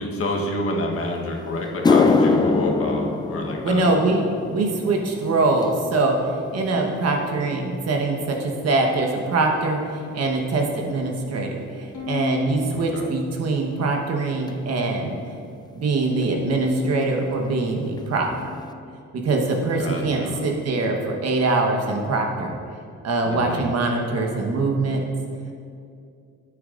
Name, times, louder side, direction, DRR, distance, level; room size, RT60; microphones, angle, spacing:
voice 1, 0.0-3.8 12.5-13.1 19.8-20.4 23.2-23.6, left 2 dB, 50° left, 0 dB, 1.2 m, -28 dB
sound 1, 1.1-1.2 1.6-10.2 10.4-10.9 11.6-11.7 14.5-14.6 16.2-16.3 16.5-16.7 17.0-17.5 18.0-18.1 18.6-18.7, left 4 dB, 15° left, 0.3 m, -25 dB
voice 2, 3.6-6.1 6.5-15.1 15.7-18.3 19.1-22.6 23.0-25.0, right 3 dB, 55° right, 1 dB, 1.2 m, -23 dB
Bowed string instrument, 11.9-14.3 14.8-15.5 16.5-19.0, left 6 dB, 65° left, 1.4 m, -35 dB
9.4 x 8.4 x 2.5 m, 2.4 s
cardioid pair, 90°, 30 cm